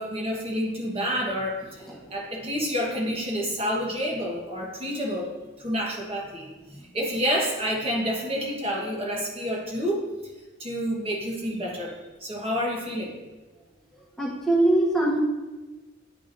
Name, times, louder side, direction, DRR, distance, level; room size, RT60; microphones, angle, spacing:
voice 1, 0.0-1.8 2.1-5.3 5.6-6.5 6.9-10.1 10.6-13.1, equal, 30° right, -2 dB, 1.3 m, -29 dB
voice 2, 14.2-15.2, right 1 dB, ahead, -4 dB, 1.3 m, -21 dB
9.9 x 4.8 x 2.7 m, 1.2 s
head